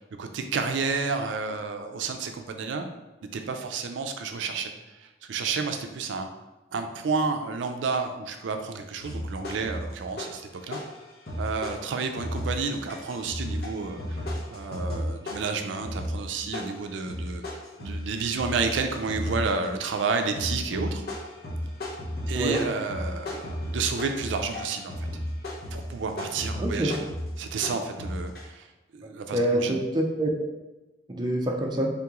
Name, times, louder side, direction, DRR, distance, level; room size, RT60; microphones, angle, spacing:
voice 1, 0.2-2.9 3.3-6.3 6.7-10.8 11.4-14.0 14.5-17.4 17.8-21.0 22.3-25.1 25.7-27.0 27.4-28.7 28.9-29.7, right 4 dB, 80° right, 6 dB, 0.4 m, -30 dB
sound 1, 9.0-10.5 10.7-28.4, left 1 dB, 55° left, 0.9 m, -34 dB
voice 2, 26.6-26.9 29.3-30.5 31.1-31.9, right 1 dB, 25° right, 0 dB, 0.4 m, -26 dB
3.7 x 2.9 x 3.6 m, 1.1 s
head